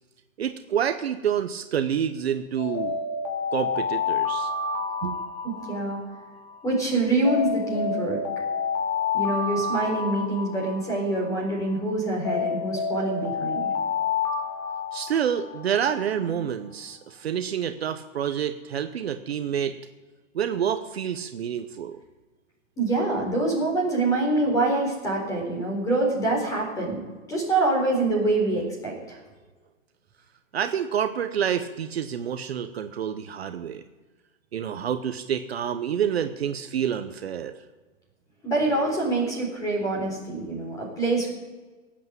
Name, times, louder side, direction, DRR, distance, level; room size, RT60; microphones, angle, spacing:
voice 1, 0.4-3.0 3.5-4.5 5.0-5.3 14.9-19.7 20.3-22.0 30.5-33.8 34.5-37.6, right 8 dB, 50° right, 8 dB, 1.0 m, -28 dB
Alarm, 2.6-6.7 7.3-11.7 12.3-16.1, left 5 dB, 30° left, 2.3 m, -29 dB
voice 2, 5.4-6.0 6.6-8.2 9.1-13.7 22.8-27.0 27.3-29.2 38.4-41.3, right 2 dB, 10° left, -1 dB, 4.2 m, -25 dB
18.5 x 8.6 x 7.7 m, 1.3 s
hypercardioid pair, 175°, 40 cm